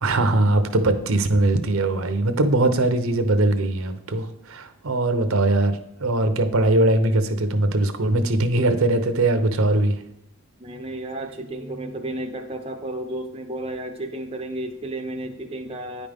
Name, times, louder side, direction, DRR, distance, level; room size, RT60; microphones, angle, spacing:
voice 1, 0.0-10.0, right 2 dB, 65° right, 8 dB, 0.7 m, -21 dB
voice 2, 10.6-16.1, right 1 dB, 25° right, 3 dB, 0.6 m, -32 dB
9.7 x 5.1 x 3.5 m, 0.85 s
head